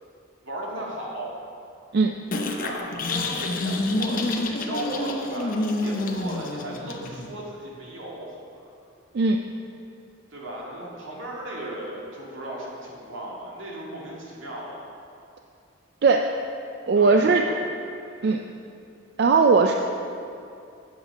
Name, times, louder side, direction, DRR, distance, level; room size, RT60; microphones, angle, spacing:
voice 1, 0.4-1.3 2.5-8.7 10.3-14.8 17.0-17.6 18.1-18.3, right 1 dB, 80° right, -4 dB, 2.1 m, -36 dB
sound 1, 2.3-7.3, left 2 dB, 45° left, 0.7 m, -28 dB
voice 2, 9.1-9.4 16.0-16.4 16.9-17.4 18.2-18.4 19.2-19.7, right 4 dB, 55° right, 3 dB, 0.4 m, -19 dB
8.3 x 6.3 x 5.9 m, 2.5 s
head